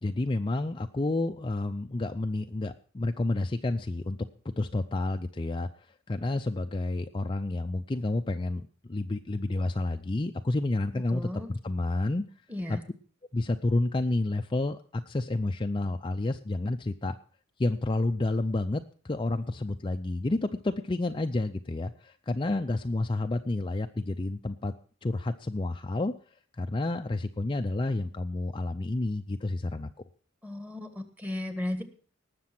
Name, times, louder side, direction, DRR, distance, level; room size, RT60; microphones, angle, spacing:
voice 1, 0.0-4.2 4.6-5.7 6.1-12.2 12.7-12.8 13.3-17.2 17.6-24.7 25.0-26.1 26.6-29.9, left 2 dB, 25° left, 6 dB, 0.5 m, -30 dB
voice 2, 10.9-11.5 12.5-12.8 30.4-31.8, left 1 dB, 10° right, 8 dB, 1.5 m, -35 dB
19.0 x 6.8 x 6.0 m, 0.43 s
head